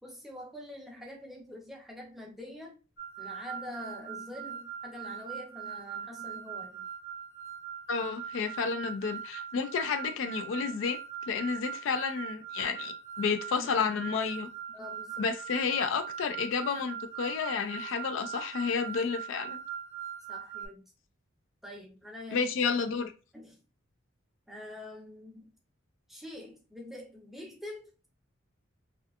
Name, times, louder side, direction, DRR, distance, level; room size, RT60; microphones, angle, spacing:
voice 1, 0.0-2.7 3.2-6.9 13.5-14.1 14.7-15.3 20.3-20.9 21.6-22.5 23.3-23.6 24.5-25.5 26.1-28.1, left 1 dB, ahead, 0.5 m, -45 dB
sound 1, 3.0-20.7, right 8 dB, 85° left, 1.2 m, -41 dB
voice 2, 7.9-11.0 11.3-14.5 15.2-19.6 22.3-23.1, left 5 dB, 65° left, 0.3 m, -31 dB
2.6 x 2.4 x 2.3 m
head